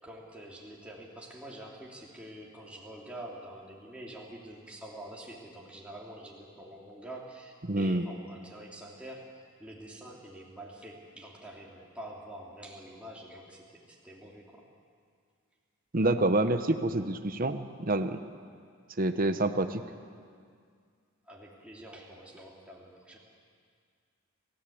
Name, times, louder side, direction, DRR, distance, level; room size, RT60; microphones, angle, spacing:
voice 1, 0.0-14.7 21.3-23.2, right 1 dB, 5° right, -3 dB, 2.9 m, -46 dB
voice 2, 7.7-8.0 15.9-18.2 19.0-19.8, right 2 dB, 40° right, 9 dB, 0.9 m, -27 dB
29.5 x 14.5 x 8.6 m, 2.2 s
head